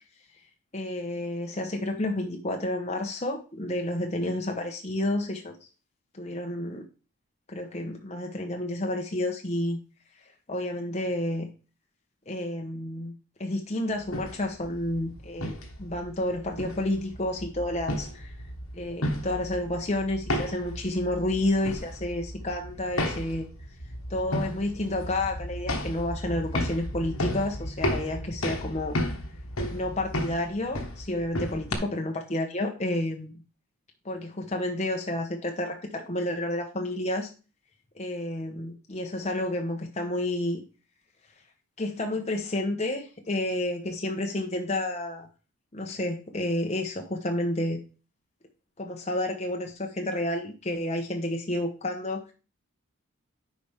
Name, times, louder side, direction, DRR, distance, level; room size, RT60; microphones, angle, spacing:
voice 1, 0.7-5.6 6.1-6.9 7.5-9.8 10.5-11.5 12.3-13.1 13.4-18.3 18.7-23.5 24.1-29.0 29.7-33.4 34.0-37.3 38.0-40.6 41.8-45.3 45.7-47.8 48.8-52.3, left 1 dB, 30° left, 2 dB, 1.0 m, -30 dB
sound 1, 14.0-31.8, left 1 dB, 75° left, 1.6 m, -34 dB
9.5 x 5.1 x 3.5 m, 0.33 s
head